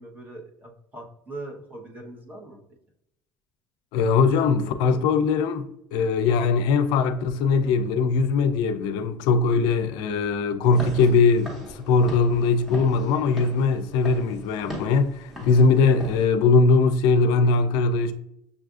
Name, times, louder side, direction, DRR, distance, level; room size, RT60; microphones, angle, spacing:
voice 1, 0.0-2.6 4.2-4.8 15.4-15.6, right 2 dB, 20° right, 0.9 m, -41 dB
voice 2, 3.9-18.1, left 4 dB, 75° left, 0.4 m, -21 dB
Walk footsteps / Siren, 10.6-16.2, equal, ahead, 1.1 m, -39 dB
6.7 x 2.5 x 2.4 m
cardioid pair, 145°, 8 cm